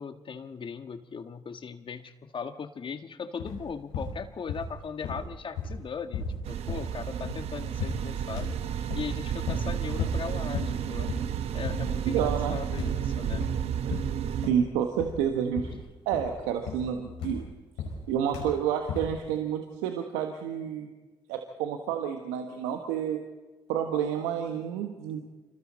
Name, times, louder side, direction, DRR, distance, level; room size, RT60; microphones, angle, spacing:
voice 1, 0.0-11.1 11.5-13.5, left 6 dB, 50° left, 9 dB, 1.5 m, -39 dB
sound 1, 3.4-3.7 3.9-4.8 5.0-7.5 7.8-8.1 8.4-9.1 9.5-9.7 10.0-10.2 10.5-10.8 11.1-11.4 11.6-11.9 12.2-12.5 12.8-13.6 13.9-14.7 15.0-15.3 15.6-15.9 16.1-18.1 18.3-18.6 18.8-19.2, left 4 dB, 85° left, 5.1 m, -35 dB
sound 2, 6.4-14.5, right 9 dB, 70° right, 1.1 m, -32 dB
voice 2, 12.1-12.6 13.8-14.0 14.4-15.7 16.0-17.5 18.1-20.9 21.3-23.2 23.7-25.3, right 8 dB, 85° right, 5 dB, 1.3 m, -29 dB
27.5 x 26.0 x 4.3 m, 1.2 s
hypercardioid pair, 40°, 11 cm